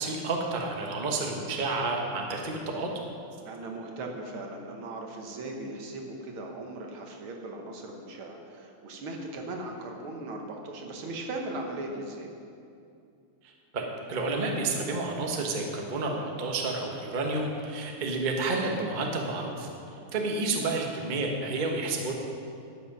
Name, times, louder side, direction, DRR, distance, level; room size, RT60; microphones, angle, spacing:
voice 1, 0.0-2.9 13.7-19.7 20.1-22.1, right 3 dB, 30° right, 1 dB, 0.9 m, -30 dB
voice 2, 3.4-12.3 20.0-20.4, right 2 dB, 75° right, 2 dB, 2.0 m, -38 dB
11.5 x 8.4 x 5.4 m, 2.5 s
omnidirectional pair, 2.4 m